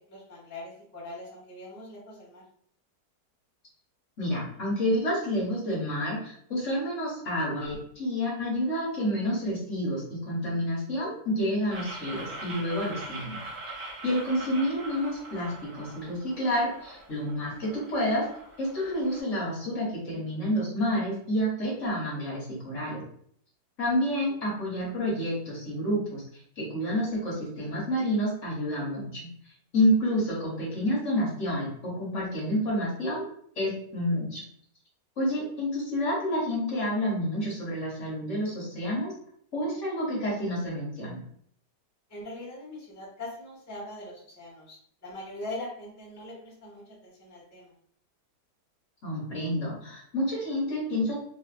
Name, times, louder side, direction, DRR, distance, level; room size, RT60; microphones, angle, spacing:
voice 1, 0.1-2.4 27.6-27.7 35.2-35.3 42.1-47.7, left 2 dB, 15° left, -6 dB, 0.7 m, -42 dB
voice 2, 4.2-13.4 14.0-18.2 18.6-23.0 23.8-26.2 26.6-29.3 29.7-33.2 33.6-34.4 35.2-39.1 39.5-41.2 49.0-51.2, equal, 50° left, -5 dB, 1.3 m, -29 dB
sound 1, 11.7-19.2, right 2 dB, 60° right, 0.5 m, -42 dB
3.2 x 2.6 x 2.4 m, 0.63 s
omnidirectional pair, 1.9 m